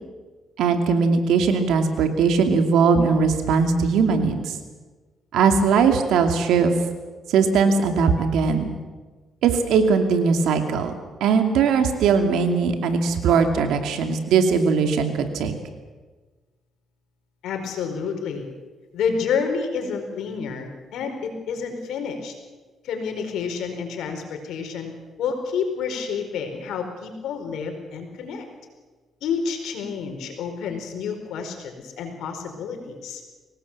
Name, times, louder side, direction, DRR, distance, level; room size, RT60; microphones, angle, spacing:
voice 1, 0.6-4.5 5.3-6.7 7.3-8.7 9.4-10.9 11.2-15.5, right 5 dB, 85° right, 6 dB, 2.7 m, -20 dB
voice 2, 17.4-18.5 18.9-22.3 22.8-24.9 25.2-28.4 29.2-33.2, left 6 dB, 80° left, 5 dB, 4.6 m, -29 dB
24.0 x 18.5 x 7.5 m, 1.3 s
cardioid pair, 90°, 0 cm